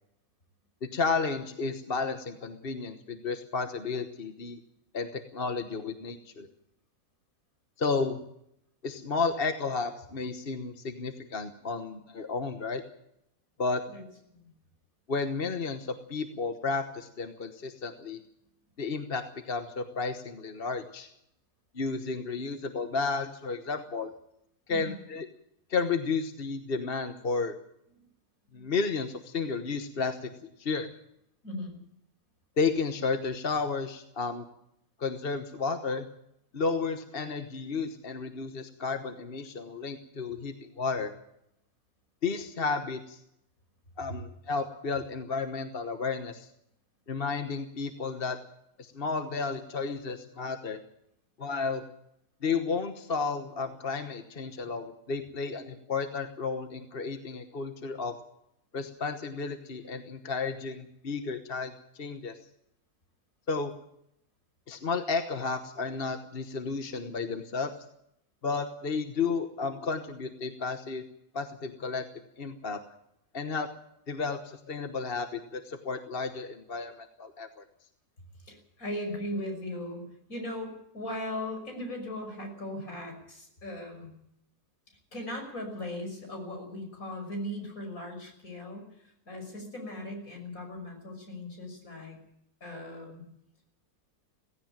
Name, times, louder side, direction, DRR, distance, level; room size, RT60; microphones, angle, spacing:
voice 1, 0.9-4.6 4.9-6.5 7.8-8.2 8.8-12.8 13.6-13.8 15.1-18.2 18.8-21.1 21.7-24.1 24.7-25.3 25.7-27.5 28.5-30.3 30.6-30.9 32.6-34.4 35.0-36.1 36.5-41.1 42.2-43.2 44.0-46.5 47.1-48.4 48.8-50.8 51.4-51.8 52.4-58.1 58.7-62.4 63.5-63.7 64.7-67.7 68.4-71.0 71.3-72.0 72.4-72.8 73.3-73.7 74.1-77.6, left 4 dB, 40° left, 7 dB, 1.3 m, -32 dB
voice 2, 31.4-31.7 78.4-80.0 80.3-84.1 85.1-92.2 92.6-93.2, left 1 dB, 60° left, 3 dB, 6.4 m, -38 dB
17.5 x 16.5 x 9.0 m, 0.76 s
omnidirectional pair, 1.6 m